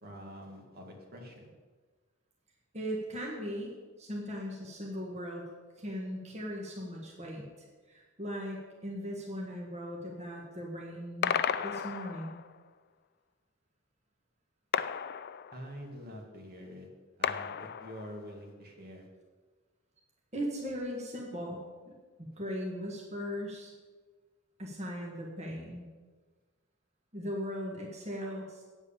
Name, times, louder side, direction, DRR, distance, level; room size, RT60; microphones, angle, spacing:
voice 1, 0.0-1.5 15.5-16.9 17.2-19.1, equal, 50° right, 1 dB, 1.9 m, -46 dB
voice 2, 2.7-3.7 4.0-5.5 5.8-7.5 7.9-11.3 11.6-12.4 20.3-21.6 21.8-21.9 22.4-23.7 24.6-25.9 27.1-28.6, equal, 35° right, -2 dB, 1.7 m, -38 dB
sound 1, 11.2-12.6 14.7-15.9 17.2-18.4, left 8 dB, 50° left, 0.4 m, -34 dB
8.8 x 8.1 x 7.1 m, 1.4 s
head